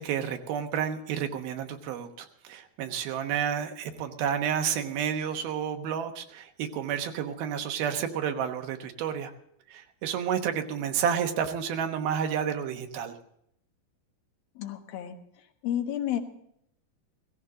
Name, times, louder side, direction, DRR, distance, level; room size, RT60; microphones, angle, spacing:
voice 1, 0.0-9.3 9.7-13.1, right 8 dB, 80° right, 6 dB, 3.0 m, -30 dB
voice 2, 14.6-15.2 15.6-16.2, left 11 dB, 75° left, 5 dB, 3.1 m, -31 dB
17.0 x 15.5 x 3.8 m, 0.72 s
omnidirectional pair, 4.3 m